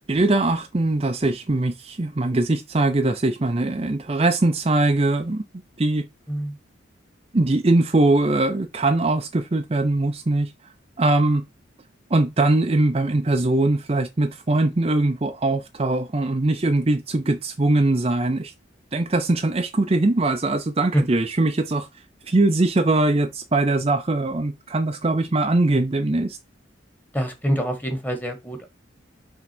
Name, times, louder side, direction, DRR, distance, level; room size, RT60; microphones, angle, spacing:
voice 1, 0.1-5.4 5.8-6.1 7.3-10.5 11.0-11.4 12.1-18.5 18.9-21.9 22.2-26.4, right 2 dB, 30° right, 0.5 m, -21 dB
voice 2, 27.1-28.7, equal, 10° left, 1.4 m, -25 dB
5.9 x 3.7 x 6.0 m
head